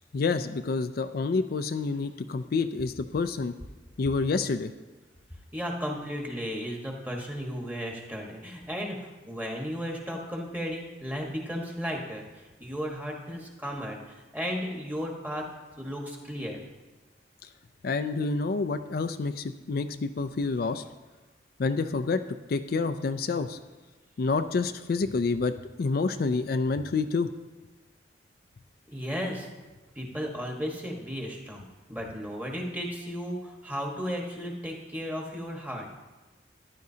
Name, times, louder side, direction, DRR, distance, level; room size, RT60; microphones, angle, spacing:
voice 1, 0.1-3.5 4.0-4.7 17.4-17.5 17.8-20.8 21.6-22.2 22.5-23.6 24.2-25.5 25.8-27.3, left 4 dB, 55° left, 8 dB, 0.4 m, -28 dB
voice 2, 5.5-12.2 12.6-15.5 15.8-16.6 28.9-29.5 29.9-31.6 31.9-35.9, equal, 10° right, 0 dB, 1.4 m, -34 dB
14.0 x 10.5 x 2.8 m, 1.2 s
head